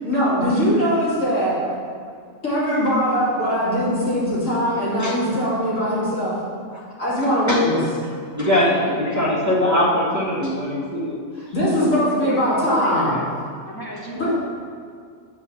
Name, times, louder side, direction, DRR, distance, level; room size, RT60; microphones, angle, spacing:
voice 1, 0.0-1.6 2.4-6.3 7.0-7.8 11.4-13.2 14.2-14.3, equal, 65° left, -8 dB, 2.8 m, -21 dB
voice 2, 7.2-7.9 8.3-11.2, left 1 dB, 15° right, -7 dB, 1.3 m, -21 dB
voice 3, 8.8-9.9 11.8-13.3 13.6-14.4, equal, 20° left, -3 dB, 1.1 m, -35 dB
6.6 x 5.0 x 7.0 m, 2.2 s
omnidirectional pair, 1.4 m